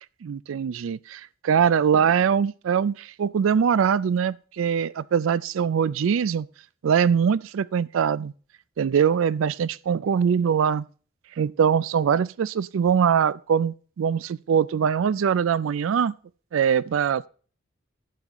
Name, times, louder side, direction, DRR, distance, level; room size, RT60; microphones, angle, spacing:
voice 1, 0.2-6.5 6.8-8.3 8.8-10.9 11.4-16.1 16.5-17.3, right 7 dB, 85° right, 0.4 m, -22 dB
11.5 x 9.1 x 3.0 m
head